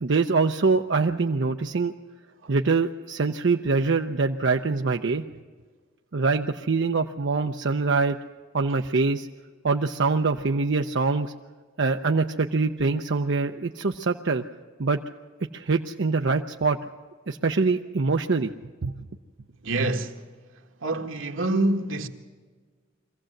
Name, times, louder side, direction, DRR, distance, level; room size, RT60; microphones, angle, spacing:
voice 1, 0.0-1.9 2.5-5.2 6.1-8.2 8.5-9.3 9.6-11.3 11.8-14.4 14.8-15.0 15.5-16.8 17.3-18.5 18.8-18.9, right 4 dB, 65° right, 0.6 m, -24 dB
voice 2, 19.6-20.2 20.8-22.1, right 2 dB, 90° right, 1.6 m, -26 dB
23.0 x 15.5 x 7.8 m
head